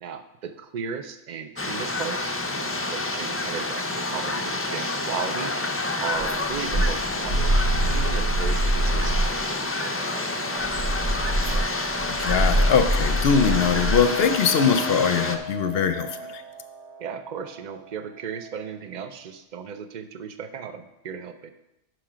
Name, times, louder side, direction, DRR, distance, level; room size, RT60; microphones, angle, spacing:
voice 1, 0.0-5.5 6.0-7.4 7.9-11.7 17.0-21.5, right 6 dB, 45° right, 8 dB, 0.7 m, -36 dB
sound 1, 1.6-15.4, left 2 dB, 20° left, 0.3 m, -28 dB
sound 2, 6.2-9.4 10.6-14.1, right 1 dB, 60° right, 1.5 m, -24 dB
sound 3, 9.9-19.1, right 1 dB, 85° right, 1.2 m, -41 dB
voice 2, 12.1-16.4, left 7 dB, 65° left, 10 dB, 0.8 m, -22 dB
11.5 x 4.8 x 5.0 m, 0.91 s
omnidirectional pair, 1.2 m